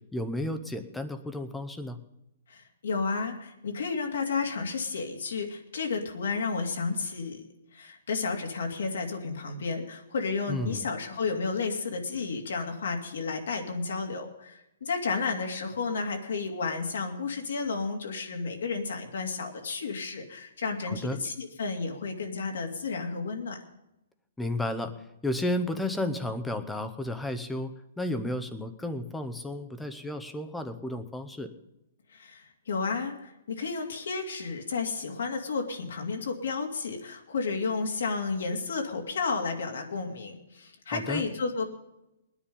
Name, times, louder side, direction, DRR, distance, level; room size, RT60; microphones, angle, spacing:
voice 1, 0.1-2.0 10.5-10.9 20.9-21.2 24.4-24.9 25.2-27.7 28.0-31.5 40.9-41.2, left 1 dB, 5° left, 9 dB, 0.7 m, -32 dB
voice 2, 2.5-7.4 7.7-23.6 32.1-41.7, left 4 dB, 75° left, 3 dB, 2.5 m, -32 dB
20.5 x 10.0 x 5.4 m, 0.90 s
hypercardioid pair, 170°, 0 cm